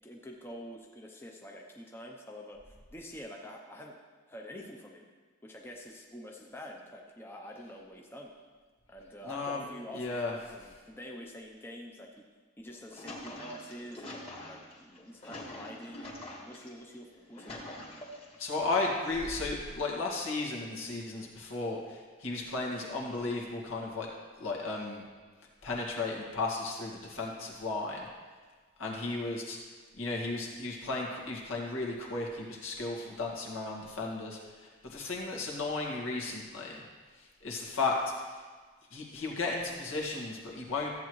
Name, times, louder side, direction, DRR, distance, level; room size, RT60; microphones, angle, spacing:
voice 1, 0.0-4.0 4.3-5.1 5.4-8.3 8.9-12.1 12.6-17.7, equal, 10° left, 0 dB, 0.6 m, -47 dB
voice 2, 9.3-9.6 9.9-10.3 18.4-24.1 24.4-25.0 25.6-28.1 28.8-29.6 30.0-36.8 37.4-38.0 38.9-40.9, left 3 dB, 80° left, -2 dB, 1.9 m, -34 dB
sound 1, 12.6-16.7 17.1-18.4 19.0-19.7, left 1 dB, 30° left, 1.5 m, -45 dB
14.0 x 8.1 x 3.1 m, 1.5 s
head